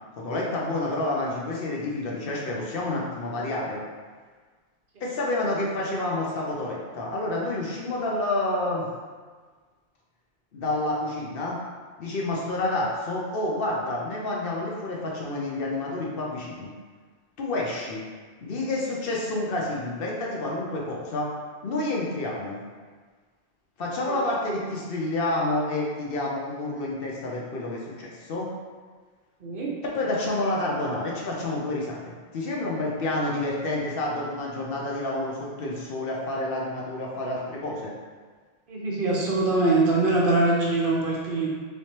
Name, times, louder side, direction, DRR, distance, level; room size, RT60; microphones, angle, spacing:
voice 1, 0.2-3.8 5.0-8.9 10.5-11.6 12.0-16.7 17.4-18.0 18.4-21.3 21.6-22.6 23.8-28.5 29.8-32.0 32.3-37.9, left 2 dB, 65° left, -3 dB, 0.8 m, -29 dB
voice 2, 29.4-29.7 38.7-41.5, right 2 dB, 60° right, -4 dB, 0.8 m, -23 dB
3.2 x 3.1 x 2.8 m, 1.5 s
omnidirectional pair, 1.1 m